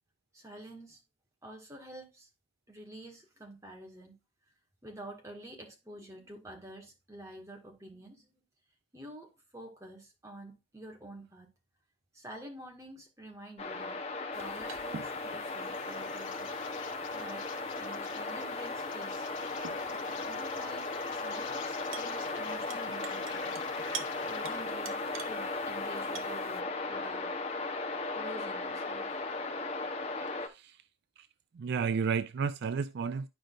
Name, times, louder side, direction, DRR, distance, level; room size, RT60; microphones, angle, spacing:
voice 1, 0.3-1.0 1.4-2.3 2.7-4.2 4.8-8.3 8.9-11.5 12.1-14.0 14.3-16.5 17.1-17.5 17.8-19.3 20.3-23.6 24.2-27.3 28.1-29.1, right 1 dB, 15° right, 1.9 m, -48 dB
sound 1, 13.6-30.5, left 3 dB, 30° left, 1.0 m, -36 dB
sound 2, 14.3-26.6, right 6 dB, 80° right, 0.9 m, -49 dB
Insect, 15.5-24.8, left 6 dB, 65° left, 1.1 m, -50 dB
voice 2, 30.5-30.8 31.6-33.3, right 5 dB, 55° right, 0.3 m, -32 dB
11.0 x 5.1 x 2.5 m
head